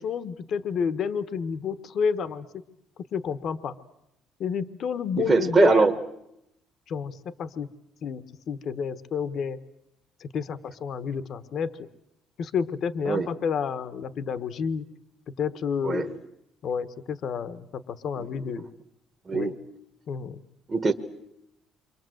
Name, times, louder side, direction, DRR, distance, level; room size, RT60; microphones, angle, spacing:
voice 1, 0.0-2.5 3.1-3.7 4.4-5.9 6.9-7.7 8.0-9.6 10.2-11.9 12.4-14.8 15.4-16.2 16.6-18.7 19.3-19.5 20.1-20.4, left 6 dB, 50° left, 12 dB, 1.1 m, -30 dB
voice 2, 5.2-5.9 13.1-13.3 15.8-16.1 18.2-18.3 19.3-19.5 20.7-20.9, right 4 dB, 25° right, 3 dB, 1.3 m, -22 dB
28.5 x 25.0 x 7.8 m, 0.83 s
cardioid pair, 145°, 0 cm